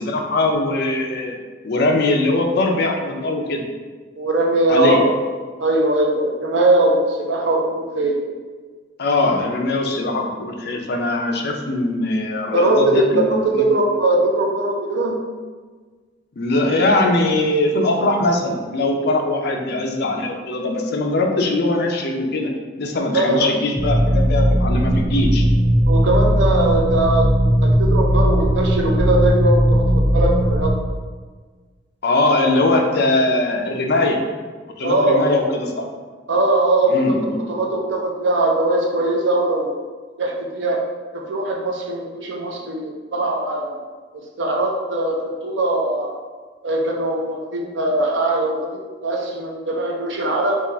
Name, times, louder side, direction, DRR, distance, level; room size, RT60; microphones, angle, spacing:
voice 1, 0.0-1.4 1.6-3.6 4.7-5.0 9.0-13.7 16.4-22.5 22.8-25.4 32.0-34.2 34.8-35.9 36.9-37.3, left 2 dB, 60° left, 2 dB, 0.5 m, -21 dB
voice 2, 4.2-5.1 5.6-8.2 12.5-15.2 23.1-23.5 25.9-30.7 34.8-35.2 36.3-37.2 37.5-39.8 40.2-40.8 41.1-43.8 44.4-46.2 46.6-50.5, right 2 dB, 70° right, 0 dB, 0.7 m, -20 dB
sound 1, 23.8-30.7, equal, 5° right, 0.5 m, -17 dB
3.6 x 2.4 x 4.2 m, 1.4 s
head